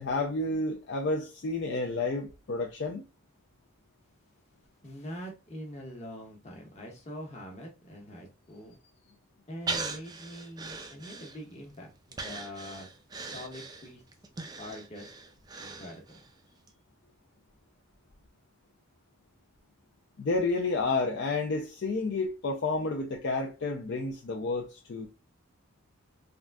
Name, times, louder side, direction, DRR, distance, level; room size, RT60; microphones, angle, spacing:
voice 1, 0.0-3.0 20.2-25.1, left 3 dB, 50° left, 0.4 m, -30 dB
voice 2, 4.8-8.8 9.5-12.9 13.3-14.0 14.6-15.1 15.6-16.2, equal, 30° left, 1.0 m, -44 dB
Breathing, 9.7-11.6 12.1-16.3 16.7-16.8, right 4 dB, 20° right, 0.3 m, -39 dB
3.5 x 2.5 x 2.2 m
head